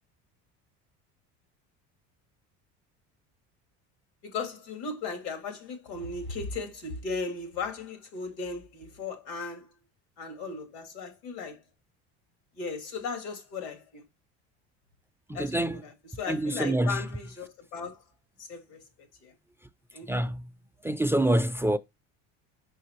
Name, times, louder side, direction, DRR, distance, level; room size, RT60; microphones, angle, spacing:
voice 1, 4.2-9.7 10.2-11.6 12.6-14.0 15.3-18.0 18.4-18.8 19.2-19.3 19.9-20.3, left 4 dB, 90° left, 2.8 m, -37 dB
voice 2, 15.4-15.8 16.3-17.0 20.1-20.4 20.8-21.8, right 1 dB, 10° right, 0.3 m, -26 dB
5.9 x 5.5 x 3.0 m
supercardioid pair, 105°, 32 cm